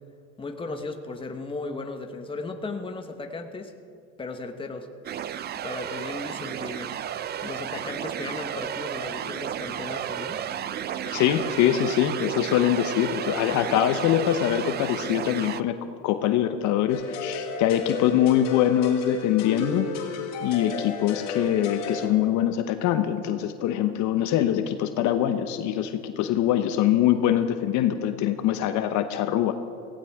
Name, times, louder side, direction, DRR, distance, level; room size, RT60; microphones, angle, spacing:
voice 1, 0.4-3.7 4.2-4.9 5.6-6.9 7.4-10.4, left 3 dB, 15° left, 5 dB, 1.2 m, -36 dB
sound 1, 5.0-15.6, right 9 dB, 30° right, 0.5 m, -33 dB
voice 2, 11.1-15.8 16.0-19.9 20.4-29.5, left 11 dB, 60° left, 9 dB, 0.9 m, -23 dB
sound 2, 16.9-22.1, left 4 dB, 80° left, 2.7 m, -32 dB
18.0 x 15.5 x 3.6 m, 2.4 s
supercardioid pair, 110°, 34 cm